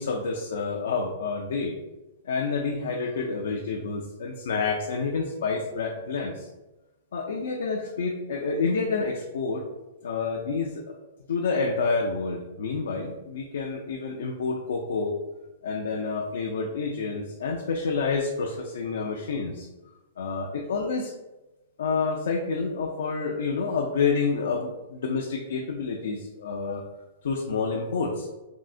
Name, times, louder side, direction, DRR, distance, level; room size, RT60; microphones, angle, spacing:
voice 1, 0.0-1.8 2.2-6.5 7.1-9.6 10.0-11.0 11.3-15.2 15.6-19.7 20.2-21.1 21.8-26.8 27.2-28.3, left 4 dB, 80° left, 1 dB, 0.3 m, -28 dB
3.6 x 2.0 x 2.4 m, 1.0 s
hypercardioid pair, 140°, 0 cm